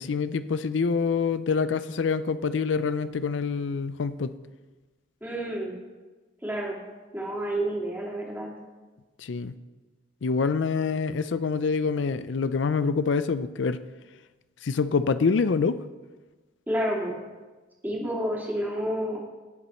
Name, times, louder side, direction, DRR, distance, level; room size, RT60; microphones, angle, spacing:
voice 1, 0.0-4.3 9.2-9.5 10.2-13.8 14.6-15.8, left 5 dB, 75° left, 13 dB, 0.5 m, -26 dB
voice 2, 5.2-5.7 6.4-6.8 7.1-8.5 16.7-17.2 17.8-19.2, right 1 dB, 10° right, -3 dB, 2.5 m, -29 dB
19.0 x 7.0 x 4.4 m, 1.3 s
head